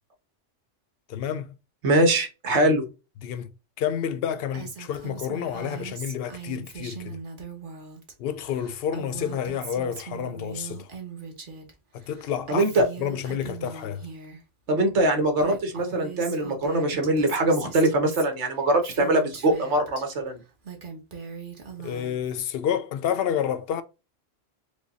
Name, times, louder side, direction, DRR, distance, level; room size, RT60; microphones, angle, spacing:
voice 1, 1.1-1.6 2.6-2.7 3.2-3.5 3.8-7.2 8.2-10.9 11.9-12.7 13.0-14.1 21.8-23.8, left 9 dB, 60° left, 0.7 m, -29 dB
voice 2, 1.8-2.8 12.5-12.9 14.7-20.4, right 1 dB, 65° right, 1.3 m, -22 dB
Female speech woman speaking, 4.5-8.1 8.4-11.7 12.0-14.4 15.0-15.1 15.3-20.0 20.5-22.4, right 5 dB, 45° right, 1.1 m, -40 dB
5.0 x 2.2 x 4.0 m
omnidirectional pair, 1.3 m